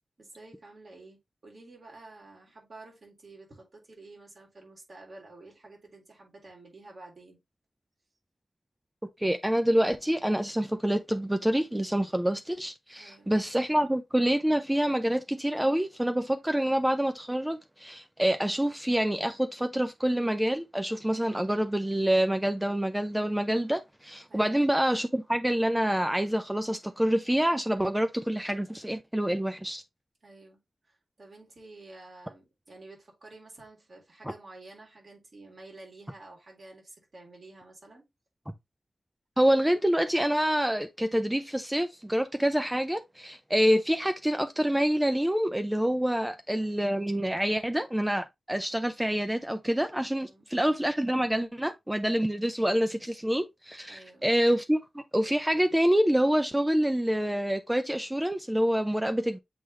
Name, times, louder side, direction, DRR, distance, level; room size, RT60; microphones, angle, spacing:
voice 1, 0.2-7.4 12.9-13.3 24.3-24.6 30.2-30.6 30.9-38.1 46.1-46.3 50.2-50.5 53.9-54.2, right 2 dB, 55° right, 3.7 m, -50 dB
voice 2, 9.2-29.8 39.4-59.4, equal, 10° right, 0.5 m, -27 dB
7.7 x 3.8 x 3.1 m
wide cardioid pair, 80°, 0 cm